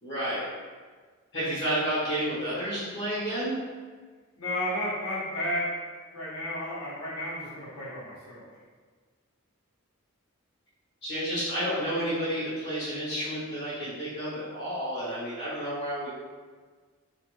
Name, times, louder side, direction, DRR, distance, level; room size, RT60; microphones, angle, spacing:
voice 1, 0.0-0.4 1.3-3.6 11.0-16.1, equal, 50° left, -10 dB, 0.9 m, -30 dB
voice 2, 4.4-5.8 6.1-8.5, left 1 dB, 80° left, -7 dB, 1.0 m, -32 dB
2.4 x 2.2 x 3.0 m, 1.5 s
head